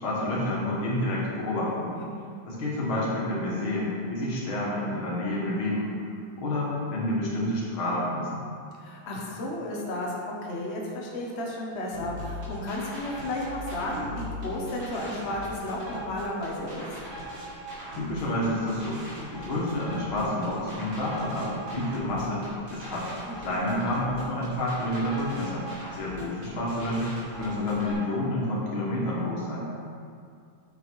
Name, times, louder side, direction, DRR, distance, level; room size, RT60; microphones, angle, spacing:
voice 1, 0.0-1.9 2.5-5.9 6.4-8.4 17.9-22.5 22.7-23.1 23.4-25.7 25.9-29.7, left 1 dB, 85° left, -5 dB, 2.6 m, -29 dB
voice 2, 8.8-16.8 23.3-23.4, left 1 dB, 40° left, -2 dB, 1.3 m, -33 dB
sound 1, 11.9-27.9, equal, 25° right, 2.3 m, -40 dB
8.5 x 6.6 x 4.8 m, 2.3 s
omnidirectional pair, 2.2 m